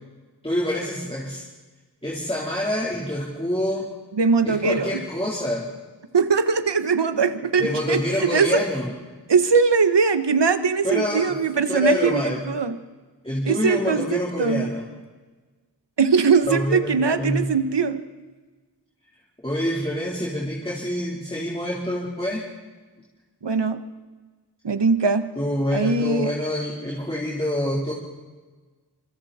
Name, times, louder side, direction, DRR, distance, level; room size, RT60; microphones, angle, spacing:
voice 1, 0.4-1.4 2.0-3.9 4.5-5.7 7.6-8.9 10.8-11.4 11.7-12.5 13.2-14.8 16.5-17.5 19.4-22.5 25.4-27.9, left 1 dB, 15° left, -5 dB, 4.0 m, -26 dB
voice 2, 4.1-5.0 6.1-8.6 9.3-12.8 13.4-14.7 16.0-18.0 23.4-23.8 24.6-25.3 25.7-26.3, right 5 dB, 75° right, 10 dB, 1.5 m, -21 dB
26.5 x 25.5 x 4.4 m, 1.3 s
wide cardioid pair, 70°, 42 cm